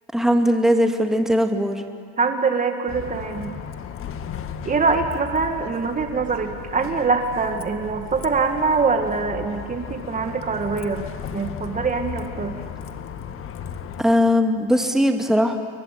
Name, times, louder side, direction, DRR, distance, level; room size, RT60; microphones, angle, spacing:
voice 1, 0.1-1.8 14.0-15.6, equal, ahead, 4 dB, 2.5 m, -19 dB
voice 2, 2.2-3.5 4.7-11.1 11.3-12.6, right 4 dB, 25° right, 5 dB, 2.2 m, -23 dB
Bus, 2.9-14.0, left 8 dB, 40° left, 1.9 m, -35 dB
29.5 x 23.0 x 8.6 m, 2.2 s
supercardioid pair, 100°, 32 cm